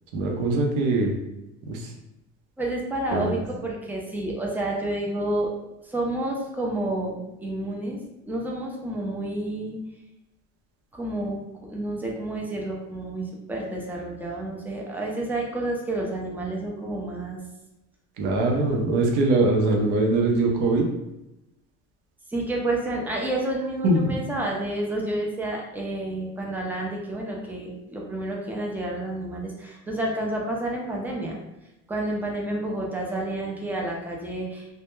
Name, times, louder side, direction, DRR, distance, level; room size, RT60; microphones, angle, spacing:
voice 1, 0.1-1.1 1.7-1.9 3.1-3.4 18.2-20.9 23.8-24.2, right 2 dB, 65° right, 1 dB, 0.6 m, -22 dB
voice 2, 2.6-5.5 5.8-8.0 8.3-9.8 10.9-11.4 11.7-17.4 22.3-31.4 31.9-34.7, right 1 dB, 5° right, -2 dB, 0.3 m, -29 dB
2.2 x 2.0 x 3.0 m, 0.93 s
cardioid pair, 130°, 32 cm